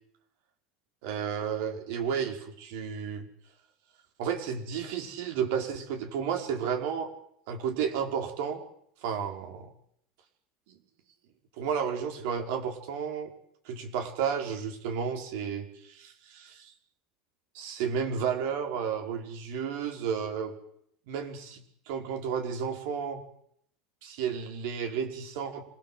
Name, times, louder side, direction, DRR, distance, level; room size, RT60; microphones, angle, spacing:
voice 1, 1.0-3.3 4.2-7.1 7.5-8.6 9.0-9.7 10.7-10.8 11.6-13.3 13.6-16.7 17.5-20.5 21.1-21.6 21.9-23.2 24.0-25.7, right 7 dB, 80° right, 4 dB, 5.1 m, -32 dB
26.5 x 18.5 x 7.8 m, 0.70 s
supercardioid pair, 125°, 0 cm